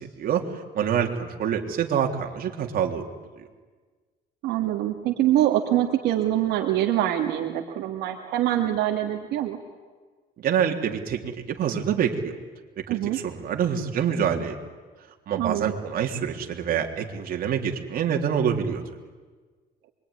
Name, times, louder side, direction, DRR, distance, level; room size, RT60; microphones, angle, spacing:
voice 1, 0.2-3.0 3.4-3.5 10.4-12.3 12.9-14.6 15.3-18.8, right 8 dB, 60° right, 2 dB, 3.5 m, -26 dB
voice 2, 4.4-9.6 12.9-13.2 15.4-15.7, right 12 dB, 85° right, 2 dB, 2.1 m, -24 dB
25.5 x 23.0 x 10.0 m, 1.4 s
cardioid pair, 110°, 17 cm